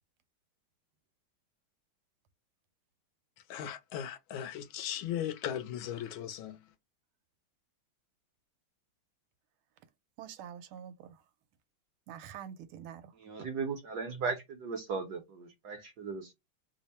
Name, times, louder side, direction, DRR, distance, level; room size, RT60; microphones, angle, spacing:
voice 1, 3.5-6.7, left 10 dB, 80° left, 1.3 m, -37 dB
voice 2, 10.2-11.2 12.1-13.2, right 9 dB, 85° right, 1.5 m, -46 dB
voice 3, 13.1-16.3, right 5 dB, 65° right, 1.0 m, -37 dB
3.5 x 2.0 x 4.1 m
omnidirectional pair, 2.3 m